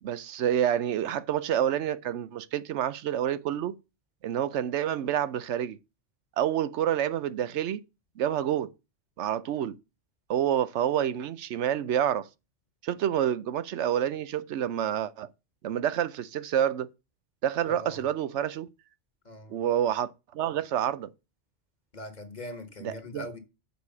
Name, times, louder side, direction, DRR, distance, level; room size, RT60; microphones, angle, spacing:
voice 1, 0.0-3.8 4.2-5.8 6.4-7.8 8.2-8.7 9.2-9.8 10.3-12.3 12.8-15.3 15.6-16.9 17.4-18.7 19.5-21.1 22.8-23.3, right 10 dB, 90° right, 1.0 m, -28 dB
voice 2, 17.7-18.0 19.2-19.6 21.9-23.4, left 1 dB, 40° left, 1.4 m, -41 dB
6.7 x 4.8 x 6.9 m
omnidirectional pair, 1.1 m